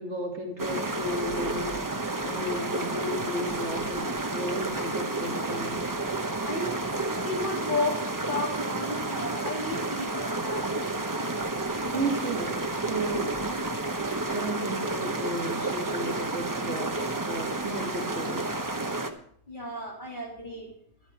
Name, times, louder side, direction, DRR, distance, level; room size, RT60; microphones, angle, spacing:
voice 1, 0.0-5.9 11.9-13.4 14.3-18.5, right 1 dB, 45° right, 0 dB, 2.3 m, -34 dB
sound 1, 0.6-19.1, right 2 dB, 20° right, 0.5 m, -31 dB
voice 2, 6.4-6.8 7.2-10.7 19.5-20.7, left 2 dB, 30° left, -2 dB, 3.0 m, -33 dB
11.5 x 11.5 x 4.5 m, 0.64 s
omnidirectional pair, 1.6 m